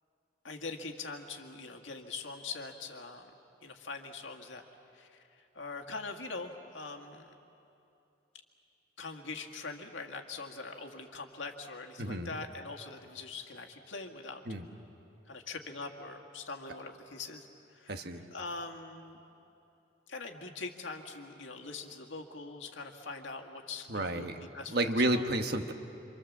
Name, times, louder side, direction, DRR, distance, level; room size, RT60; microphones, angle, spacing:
voice 1, 0.4-3.3 3.6-4.6 4.9-7.3 9.0-14.4 15.3-19.2 20.1-25.2, left 3 dB, 80° left, 2 dB, 1.9 m, -43 dB
voice 2, 12.0-12.3 14.5-14.7 17.9-18.2 23.9-25.7, right 1 dB, 55° right, 6 dB, 1.3 m, -31 dB
27.5 x 26.0 x 7.4 m, 2.8 s
head